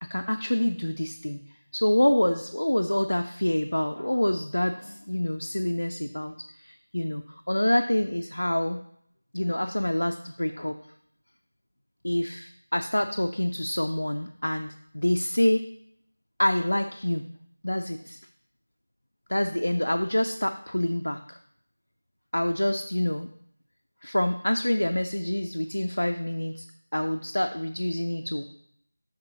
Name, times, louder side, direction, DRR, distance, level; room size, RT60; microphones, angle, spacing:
voice 1, 0.0-1.4 1.7-8.8 9.3-10.8 12.0-15.7 16.4-17.3 17.6-18.2 19.3-21.4 22.3-23.3 24.0-26.7 26.9-28.4, left 1 dB, 80° left, 6 dB, 0.4 m, -27 dB
8.6 x 5.9 x 2.9 m, 0.69 s
figure-of-eight pair, 170°, 0 cm